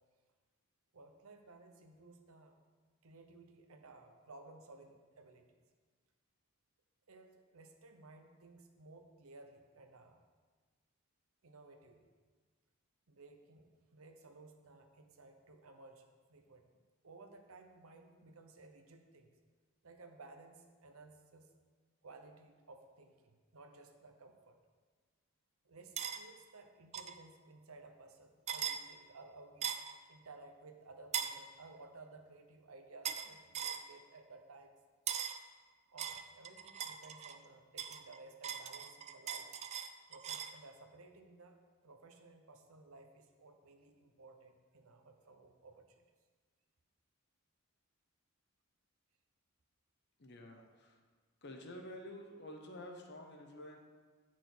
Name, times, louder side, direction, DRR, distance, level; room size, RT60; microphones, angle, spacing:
voice 1, 0.9-2.6 3.0-5.6 7.1-10.2 11.4-12.1 13.1-19.4 19.8-21.5 22.0-24.6 25.6-29.7 30.1-34.8 35.9-39.5 40.1-41.6 41.8-46.0, right 3 dB, 75° right, 5 dB, 0.9 m, -57 dB
sound 1, 26.0-26.2 26.9-27.2 28.5-28.8 29.6-29.9 31.1-31.4 33.0-33.3 33.5-33.8 35.1-35.4 36.0-37.4 37.8-40.6, right 8 dB, 30° right, 0.3 m, -40 dB
voice 2, 50.2-51.0 51.4-53.8, left 1 dB, 50° left, 3 dB, 1.0 m, -50 dB
9.2 x 6.1 x 4.5 m, 1.5 s
head